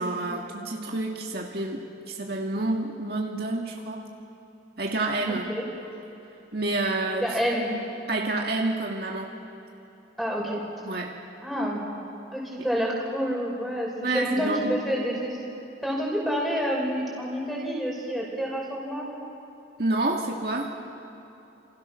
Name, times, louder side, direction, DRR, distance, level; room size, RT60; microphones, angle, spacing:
voice 1, 0.0-4.0 4.8-5.5 6.5-7.3 8.1-9.3 10.8-11.1 14.0-14.7 19.8-20.7, right 2 dB, 55° right, 0 dB, 2.0 m, -28 dB
voice 2, 7.2-7.7 10.2-10.6 11.4-11.9 12.3-15.4 15.8-19.1, equal, ahead, -3 dB, 5.7 m, -28 dB
29.0 x 27.5 x 6.4 m, 2.9 s
head